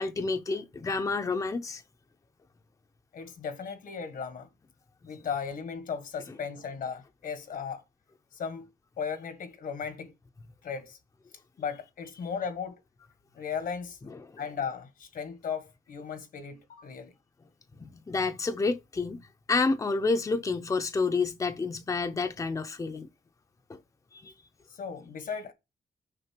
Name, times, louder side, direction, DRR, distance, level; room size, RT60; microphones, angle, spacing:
voice 1, 0.0-1.8 14.1-14.4 17.8-23.1 23.7-23.8 24.2-24.3, left 4 dB, 25° left, 0.6 m, -29 dB
voice 2, 3.1-4.5 5.0-7.8 8.3-8.7 9.0-10.1 10.6-11.0 11.6-12.8 13.3-14.0 14.4-17.1 24.7-25.5, left 6 dB, 80° left, 1.6 m, -36 dB
6.6 x 5.2 x 6.0 m
wide cardioid pair, 170°, 14 cm